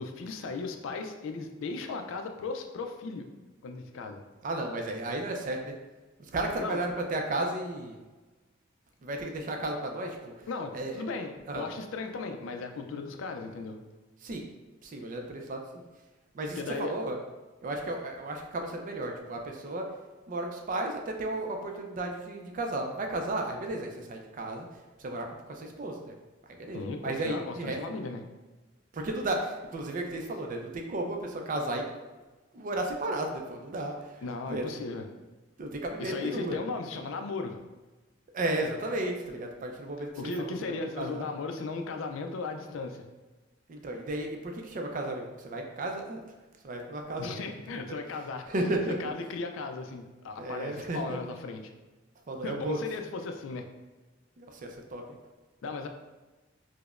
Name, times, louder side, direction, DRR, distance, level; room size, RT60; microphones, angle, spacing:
voice 1, 0.0-3.3 3.6-4.2 6.6-6.8 10.5-13.8 16.6-17.0 26.7-28.2 34.2-35.0 36.0-37.6 40.0-43.1 47.2-48.5 49.0-51.7 52.4-53.7 55.6-55.9, left 3 dB, 75° left, 5 dB, 0.4 m, -36 dB
voice 2, 4.4-5.7 6.3-8.0 9.0-10.5 10.7-11.0 11.5-11.7 14.2-14.5 14.8-15.8 16.3-17.2 17.6-19.9 20.3-24.7 25.0-26.1 26.6-27.8 28.9-31.9 32.5-34.2 34.5-34.7 35.6-36.6 38.3-41.3 43.7-46.2 46.6-47.6 47.9-48.0 48.5-49.0 50.4-51.0 52.3-52.8 54.4-55.1, right 1 dB, 40° right, 3 dB, 0.4 m, -34 dB
4.8 x 2.1 x 2.4 m, 1.2 s
head